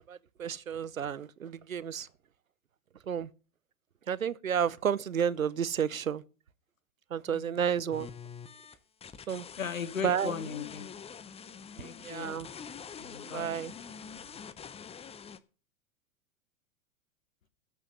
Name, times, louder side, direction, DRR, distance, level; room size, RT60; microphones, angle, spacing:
voice 1, 0.1-2.1 3.1-3.3 4.1-6.2 7.1-8.1 9.3-9.5 10.0-10.3 12.0-12.5 13.2-13.7, right 8 dB, 90° right, 0.7 m, -31 dB
voice 2, 7.3-7.6 9.6-10.9 11.8-12.4 13.0-13.6, left 7 dB, 85° left, 1.3 m, -38 dB
sound 1, 7.9-15.4, left 7 dB, 15° left, 0.7 m, -46 dB
13.0 x 5.8 x 6.7 m
figure-of-eight pair, 90°, 39 cm